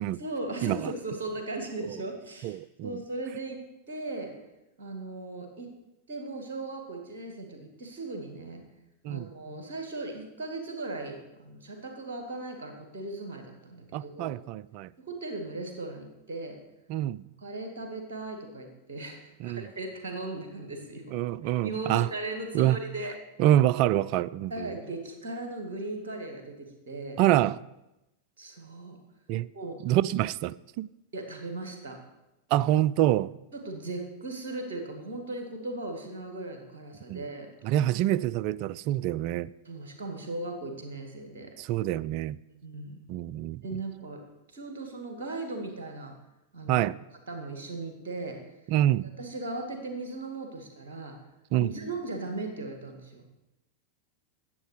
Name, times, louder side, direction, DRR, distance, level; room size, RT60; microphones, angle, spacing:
voice 1, 0.2-4.4 4.8-5.7 6.1-8.6 9.1-14.3 15.0-16.6 17.4-21.0 21.4-23.2 24.5-27.2 28.4-29.0 29.5-29.8 31.1-32.0 33.5-37.5 39.6-41.6 42.6-43.0 43.6-44.2 44.5-46.2 46.5-46.8 47.3-48.5 49.0-51.2 51.6-53.2, right 2 dB, 60° right, 2.2 m, -37 dB
voice 2, 2.4-2.9 9.0-9.3 13.9-14.9 16.9-17.2 19.4-19.6 21.1-22.1 22.5-22.8 23.4-24.7 27.2-27.6 29.3-29.5 29.8-30.9 32.5-33.3 37.1-37.2 37.6-39.5 41.6-42.4 43.1-43.6 46.7-47.0 48.7-49.1 51.5-51.7, right 13 dB, 45° right, 0.3 m, -26 dB
11.0 x 8.2 x 6.6 m
figure-of-eight pair, 90°, 0 cm